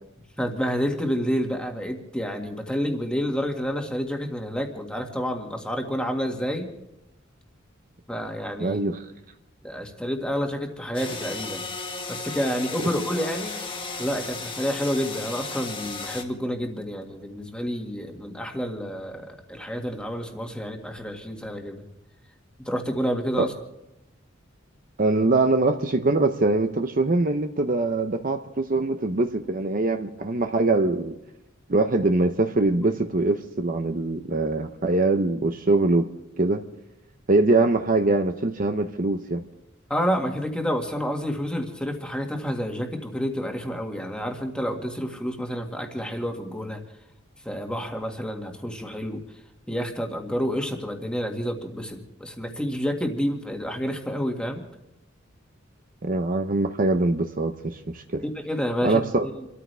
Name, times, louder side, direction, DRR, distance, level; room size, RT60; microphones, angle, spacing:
voice 1, 0.4-6.7 8.1-8.8 9.6-11.6 12.1-13.6 14.0-21.8 22.6-23.5 39.9-46.8 47.4-49.2 49.7-54.6 58.2-59.0, equal, 5° left, 2 dB, 1.9 m, -29 dB
voice 2, 8.6-9.0 23.4-23.5 25.0-31.2 31.7-36.1 36.4-36.6 37.3-39.4 56.0-58.2 58.8-59.3, right 2 dB, 45° right, 7 dB, 0.8 m, -23 dB
sound 1, 10.9-16.2, left 4 dB, 25° left, 1.6 m, -34 dB
28.5 x 13.5 x 3.4 m, 0.87 s
head